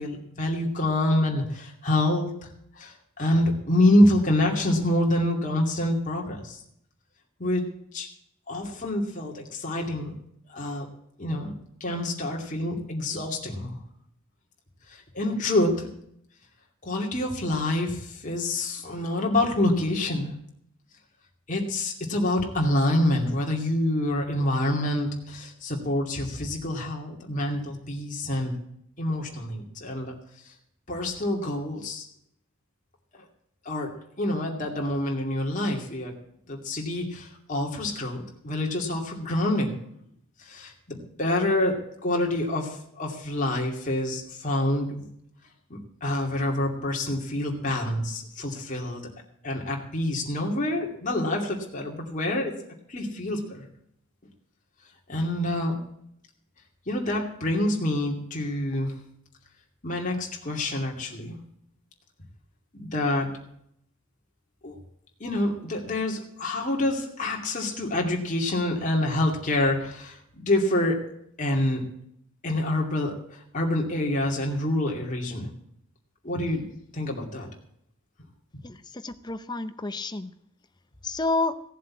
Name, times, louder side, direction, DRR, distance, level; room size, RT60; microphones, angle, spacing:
voice 1, 0.0-2.3 2.8-6.6 7.4-7.7 7.9-8.1 8.5-10.1 10.5-10.9 11.2-11.5 11.8-13.8 14.9-15.9 16.8-20.3 21.5-28.5 29.0-30.1 30.9-32.1 33.1-33.2 33.6-36.1 36.5-39.8 40.4-45.1 45.7-49.0 49.4-52.6 52.9-53.7 55.1-55.8 56.9-58.9 59.8-61.4 62.7-63.4 64.6-64.8 65.2-71.0 71.4-71.9 72.4-75.5 76.2-76.6 76.9-77.5, left 1 dB, 35° left, 0 dB, 2.5 m, -27 dB
voice 2, 78.6-80.3 81.0-81.6, left 2 dB, 20° left, 12 dB, 0.7 m, -29 dB
16.0 x 7.6 x 8.5 m, 0.71 s
head